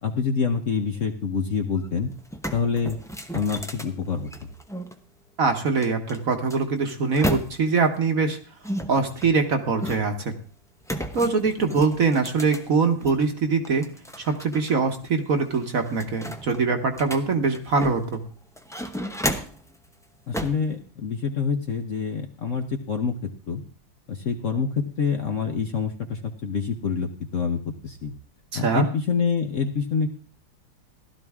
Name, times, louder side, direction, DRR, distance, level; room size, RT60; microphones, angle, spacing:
voice 1, 0.0-2.1 2.5-3.0 3.3-4.5 20.3-23.1 23.5-23.6 24.1-28.1 28.5-30.1, left 5 dB, 50° left, 4 dB, 1.1 m, -26 dB
sound 1, 1.8-1.9 2.2-4.9 5.8-7.9 8.6-10.3 10.8-13.2 13.6-14.7 15.0-15.1 15.5-18.2 18.6-19.7 20.3-20.7, equal, 5° left, 0.3 m, -33 dB
voice 2, 5.4-8.4 8.9-10.3 11.1-13.9 14.3-18.2 28.5-28.9, right 4 dB, 50° right, 5 dB, 1.5 m, -23 dB
16.0 x 12.5 x 3.6 m, 0.40 s
omnidirectional pair, 2.2 m